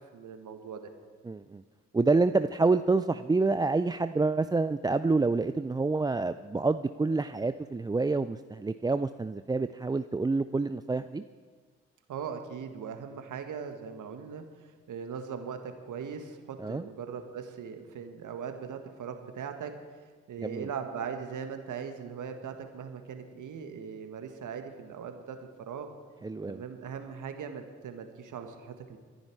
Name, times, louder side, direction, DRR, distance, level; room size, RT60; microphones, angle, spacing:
voice 1, 0.1-0.8 12.1-19.7 20.3-25.9 26.5-29.0, right 7 dB, 60° right, 6 dB, 1.8 m, -40 dB
voice 2, 1.2-1.6 1.9-11.2 16.6-16.9 20.4-20.7 26.2-26.6, right 3 dB, 10° right, 11 dB, 0.4 m, -27 dB
23.5 x 10.5 x 4.7 m, 1.5 s
hypercardioid pair, 45°, 34 cm